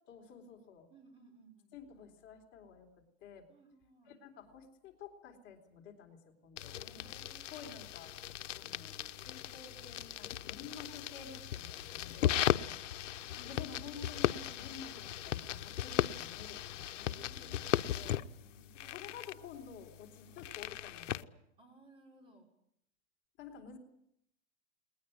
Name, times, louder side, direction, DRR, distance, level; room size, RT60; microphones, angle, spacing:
voice 1, 0.1-0.9 1.7-2.9 3.2-3.5 4.1-7.1 7.5-8.1 8.5-9.0 9.2-12.4 13.4-17.7 17.9-18.2 18.8-21.3 23.4-23.8, left 6 dB, 30° left, 2 dB, 3.9 m, -51 dB
voice 2, 0.9-1.7 3.5-4.2 6.7-7.7 8.6-9.2 12.5-13.6 17.2-19.0 20.2-20.4 21.6-22.5, right 3 dB, 15° right, 2 dB, 5.4 m, -62 dB
sound 1, 6.6-21.2, left 11 dB, 85° left, 1.0 m, -37 dB
20.5 x 20.0 x 9.3 m, 0.76 s
supercardioid pair, 145°, 36 cm